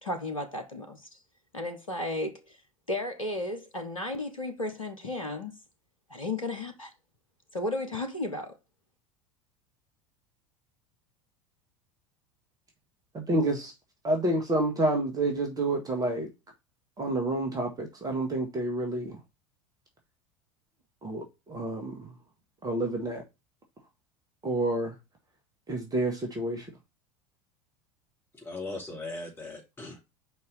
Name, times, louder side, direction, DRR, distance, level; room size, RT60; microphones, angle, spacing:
voice 1, 0.0-1.1 1.5-2.6 2.9-5.5 6.1-6.9 7.5-8.6, left 2 dB, 80° left, 1.1 m, -34 dB
voice 2, 13.1-13.7 14.0-16.3 17.0-19.2 21.0-22.1 22.6-23.2 24.4-24.9 25.7-26.7, right 1 dB, 20° right, 1.9 m, -29 dB
voice 3, 28.3-30.0, left 2 dB, 15° left, 2.6 m, -39 dB
5.3 x 4.6 x 5.5 m
figure-of-eight pair, 75°, 17 cm